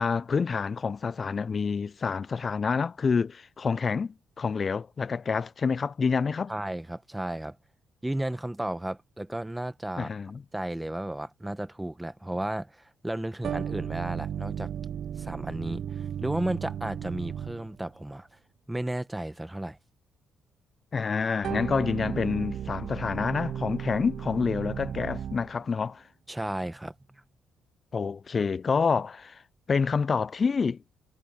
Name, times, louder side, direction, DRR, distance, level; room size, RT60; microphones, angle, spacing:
voice 1, 0.0-6.5 10.0-10.4 20.9-26.0 27.9-29.4 29.7-30.8, left 5 dB, 40° left, 0.3 m, -28 dB
voice 2, 6.5-7.6 8.0-10.1 10.5-14.7 15.2-18.4 18.7-19.8 26.3-27.2, right 1 dB, 10° right, 1.4 m, -33 dB
sound 1, 13.4-17.9 21.4-25.6, right 9 dB, 65° right, 0.5 m, -35 dB
cardioid pair, 85°, 0 cm